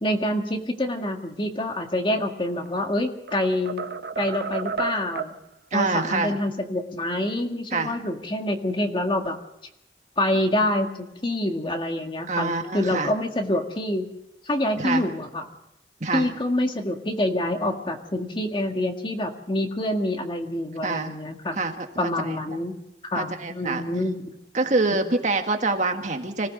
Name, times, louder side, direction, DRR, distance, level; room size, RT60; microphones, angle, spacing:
voice 1, 0.0-3.9 4.2-5.3 5.7-9.4 10.2-14.1 14.5-15.5 16.1-21.6 22.0-22.8 23.1-24.3, left 1 dB, 30° left, 4 dB, 1.8 m, -26 dB
sound 1, 2.4-2.9 3.3-5.4, right 5 dB, 60° right, 0.9 m, -32 dB
voice 2, 5.7-6.3 7.7-8.0 12.3-13.1 14.8-15.0 16.0-16.3 20.8-21.1 21.6-22.4 23.2-23.8 24.5-26.5, right 3 dB, 45° right, 4 dB, 1.8 m, -26 dB
25.5 x 16.0 x 6.6 m, 0.82 s
head